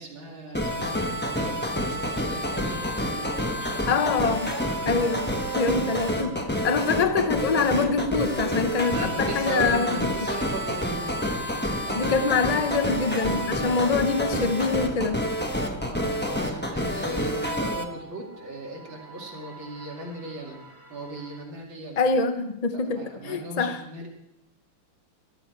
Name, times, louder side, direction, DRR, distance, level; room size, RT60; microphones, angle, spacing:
voice 1, 0.0-4.0 5.5-6.0 8.9-11.3 11.8-12.5 15.8-20.6 20.9-22.0 22.7-24.1, right 2 dB, 70° right, -2 dB, 3.3 m, -38 dB
sound 1, 0.5-17.8, equal, 10° left, 0.5 m, -28 dB
sound 2, 2.6-21.4, right 3 dB, 10° right, 2.1 m, -45 dB
voice 2, 3.9-4.6 4.8-5.3 5.5-6.3 6.6-10.0 11.9-15.2 22.0-23.8, left 4 dB, 65° left, 8 dB, 0.4 m, -24 dB
13.5 x 13.0 x 4.6 m, 0.82 s
omnidirectional pair, 2.2 m